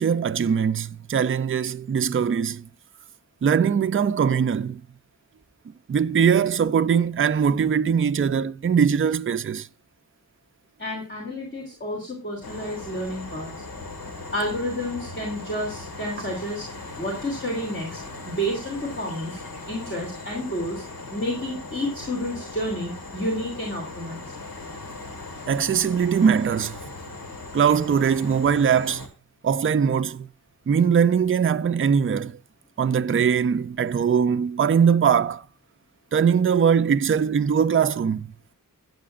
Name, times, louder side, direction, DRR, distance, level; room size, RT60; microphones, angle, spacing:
voice 1, 0.0-2.6 3.4-4.8 5.9-9.7 25.5-26.8 27.5-29.1 29.4-30.3 30.7-32.4 32.8-35.4 36.1-38.3, right 7 dB, 40° right, 0.4 m, -21 dB
voice 2, 10.8-13.5 14.3-16.6 17.0-18.0 18.2-19.4 19.7-20.8 21.1-24.3, equal, 35° left, 3.0 m, -30 dB
sound 1, 12.4-29.1, left 3 dB, 85° left, 1.9 m, -39 dB
13.5 x 7.8 x 2.5 m
wide cardioid pair, 90°, 34 cm